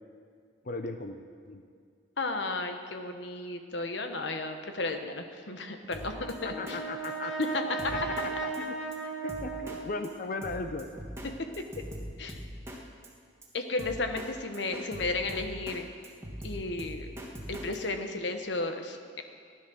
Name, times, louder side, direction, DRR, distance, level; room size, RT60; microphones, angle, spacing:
voice 1, 0.6-1.6 6.4-7.4 7.9-8.8 9.2-10.9, left 3 dB, 45° left, 7 dB, 0.6 m, -37 dB
voice 2, 2.2-6.8 7.5-8.1 12.2-12.4 13.5-15.9 16.4-17.1 17.5-19.2, left 3 dB, 70° left, 6 dB, 1.1 m, -33 dB
Brass instrument, 5.9-10.3, right 4 dB, 90° left, 2.1 m, -37 dB
Drum kit, 5.9-6.3 6.7-6.8 7.0-7.1 7.4-7.5 7.8-8.3 8.5-8.6 8.9-9.0 9.3-9.8 10.0-10.1 10.4-11.3 11.5-12.8 13.0-13.1 13.4-13.5 13.8-14.3 14.5-15.8 16.0-17.8, equal, 15° right, 1.4 m, -41 dB
15.0 x 10.5 x 6.4 m, 2.1 s
head